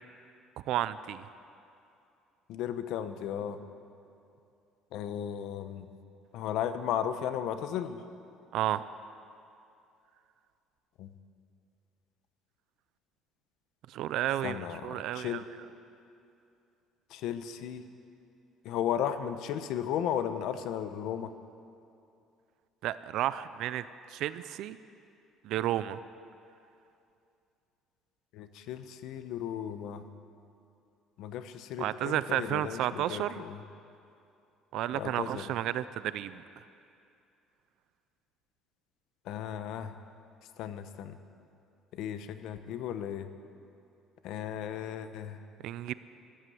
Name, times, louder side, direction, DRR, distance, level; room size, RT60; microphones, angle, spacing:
voice 1, 0.7-1.2 8.5-8.8 13.9-15.4 22.8-23.8 24.1-24.8 25.4-26.0 31.8-33.4 34.7-36.4 45.6-45.9, right 12 dB, 60° right, 15 dB, 0.4 m, -32 dB
voice 2, 2.5-3.6 4.9-5.9 6.3-8.0 11.0-11.1 14.4-14.8 15.1-15.4 17.1-17.8 18.6-21.3 28.3-30.0 31.2-33.5 34.9-35.4 39.3-39.9 40.6-41.2 42.0-43.3 44.2-45.4, left 9 dB, 65° left, 10 dB, 0.9 m, -35 dB
14.0 x 13.0 x 7.7 m, 2.6 s
cardioid pair, 165°, 0 cm